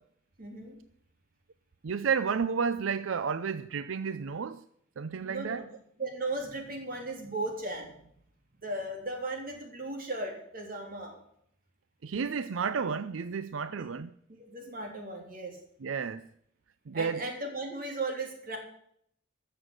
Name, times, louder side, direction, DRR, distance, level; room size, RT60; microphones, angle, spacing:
voice 1, 0.4-0.8 5.3-5.6 6.0-8.0 8.6-11.2 13.7-13.9 14.5-15.6 16.9-18.6, right 2 dB, 45° right, 3.5 m, -36 dB
voice 2, 1.8-4.6 5.0-5.6 12.0-14.1 15.8-16.2 16.9-17.3, right 6 dB, 80° right, 0.5 m, -31 dB
14.0 x 6.9 x 8.9 m
head